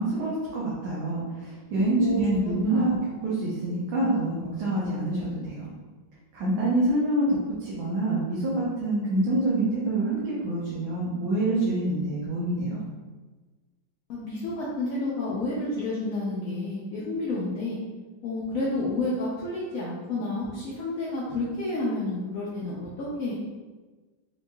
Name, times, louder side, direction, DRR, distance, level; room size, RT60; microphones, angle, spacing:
voice 1, 0.0-5.7 6.3-12.8, right 2 dB, 80° right, -7 dB, 1.6 m, -26 dB
voice 2, 2.0-2.9 14.1-17.8 18.2-23.3, left 2 dB, 75° left, -7 dB, 0.7 m, -30 dB
4.6 x 2.9 x 2.2 m, 1.3 s
omnidirectional pair, 2.2 m